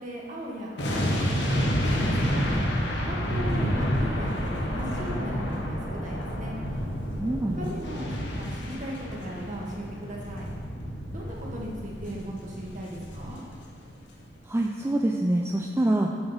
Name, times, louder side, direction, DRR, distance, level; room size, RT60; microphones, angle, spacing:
voice 1, 0.0-2.6 3.0-6.6 7.6-10.5 11.1-13.4, equal, 45° right, -3 dB, 1.6 m, -38 dB
sound 1, 0.8-13.9 14.2-14.4, equal, 80° left, 1.2 m, -29 dB
voice 2, 7.2-7.7 14.5-16.1, right 1 dB, 15° right, 1 dB, 0.3 m, -25 dB
7.8 x 5.9 x 5.5 m, 2.2 s
head